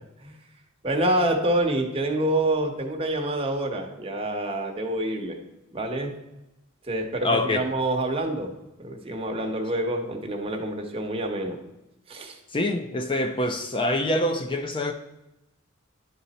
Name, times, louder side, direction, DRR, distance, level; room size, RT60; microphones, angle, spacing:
voice 1, 0.8-5.4 5.7-6.1 6.9-8.5 8.8-11.6 12.1-12.4, right 1 dB, 25° right, 2 dB, 1.1 m, -27 dB
voice 2, 7.2-7.6 12.5-14.9, left 1 dB, 25° left, 6 dB, 0.5 m, -25 dB
11.0 x 4.0 x 4.2 m, 0.97 s
head